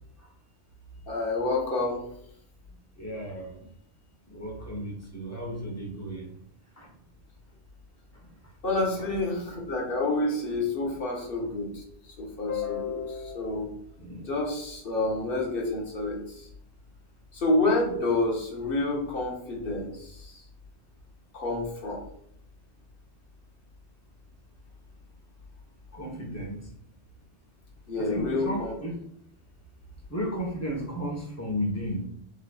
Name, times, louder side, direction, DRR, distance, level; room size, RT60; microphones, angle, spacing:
voice 1, 1.1-2.0 8.6-11.8 12.2-13.7 14.3-16.2 17.3-20.1 21.3-22.0 27.9-28.7, left 2 dB, 60° left, -1 dB, 1.2 m, -28 dB
voice 2, 3.0-3.6 4.3-6.3 6.8-6.9 8.9-9.1 14.0-14.3 25.9-26.6 28.0-29.0 30.1-32.0, equal, 15° left, -1 dB, 1.1 m, -34 dB
6.6 x 3.2 x 2.3 m, 0.69 s
omnidirectional pair, 1.1 m